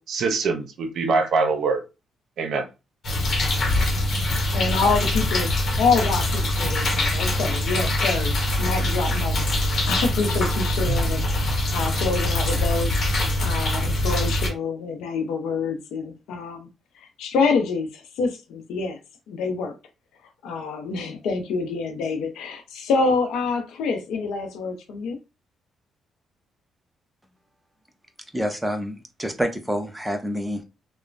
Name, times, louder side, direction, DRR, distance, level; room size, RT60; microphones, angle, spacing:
voice 1, 0.0-1.8 2.4-2.6, right 4 dB, 65° right, 0.6 m, -23 dB
sound 1, 3.0-14.5, left 1 dB, 50° left, 1.0 m, -23 dB
voice 2, 4.5-16.7 17.0-19.0 19.3-19.8 20.4-25.2, left 4 dB, 85° left, 0.6 m, -27 dB
voice 3, 28.3-30.6, equal, 5° right, 0.6 m, -27 dB
3.0 x 2.1 x 2.5 m
cardioid pair, 90°, 0 cm